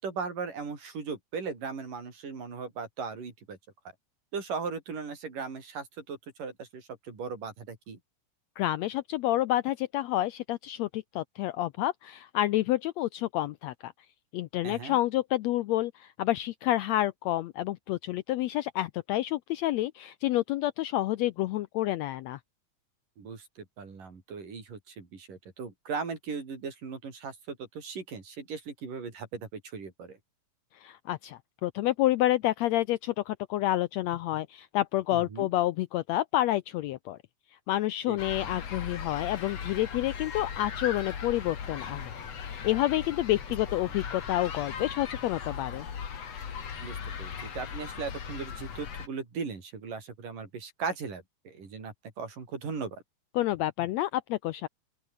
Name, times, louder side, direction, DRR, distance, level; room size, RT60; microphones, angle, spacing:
voice 1, 0.0-3.6 4.3-8.0 14.6-15.0 23.2-30.2 35.1-35.5 38.1-38.2 46.8-53.0, right 5 dB, 85° right, 6.7 m, -38 dB
voice 2, 8.6-13.9 14.3-22.4 30.7-37.2 37.7-42.1 42.4-45.9 53.3-54.7, left 15 dB, 85° left, 1.6 m, -29 dB
sound 1, 38.2-49.1, left 7 dB, 50° left, 3.5 m, -38 dB
open air
omnidirectional pair, 3.7 m